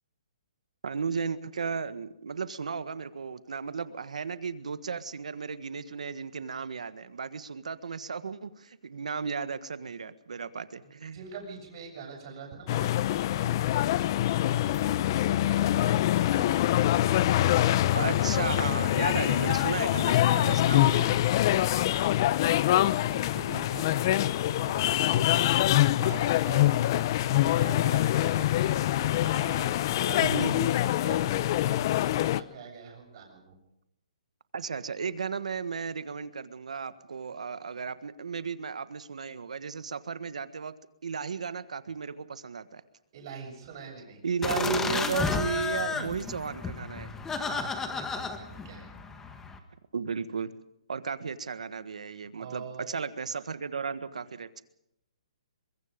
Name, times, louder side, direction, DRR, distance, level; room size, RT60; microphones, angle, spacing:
voice 1, 0.8-11.2 17.9-21.2 30.2-30.7 34.5-40.7 41.0-42.8 44.2-47.1 49.9-50.5 50.9-54.6, right 5 dB, 90° right, 13 dB, 1.6 m, -34 dB
voice 2, 11.1-14.1 14.5-19.5 21.5-28.5 29.0-30.2 30.6-33.6 43.1-44.7 47.4-48.9 52.4-52.9 53.3-53.4, right 5 dB, 45° right, 1 dB, 7.4 m, -45 dB
sound 1, 12.7-32.4, left 13 dB, 35° left, 0.7 m, -25 dB
sound 2, 44.4-49.6, left 4 dB, 10° left, 1.6 m, -32 dB
23.0 x 22.5 x 5.3 m, 0.82 s
hypercardioid pair, 160°, 4 cm